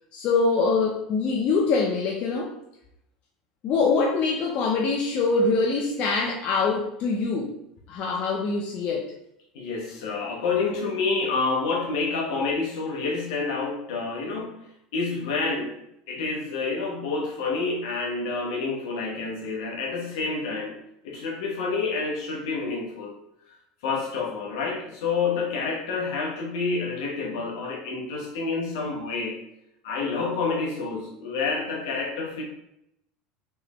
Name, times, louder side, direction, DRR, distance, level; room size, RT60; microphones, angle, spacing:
voice 1, 0.1-2.5 3.6-7.5 7.9-9.1, left 4 dB, 50° left, -1 dB, 0.6 m, -24 dB
voice 2, 9.5-14.6 14.9-15.8 16.1-20.8 21.0-23.2 23.8-29.4 29.8-32.4, left 4 dB, 75° left, 0 dB, 1.1 m, -28 dB
3.4 x 3.4 x 3.0 m, 0.80 s
hypercardioid pair, 95°, 3 cm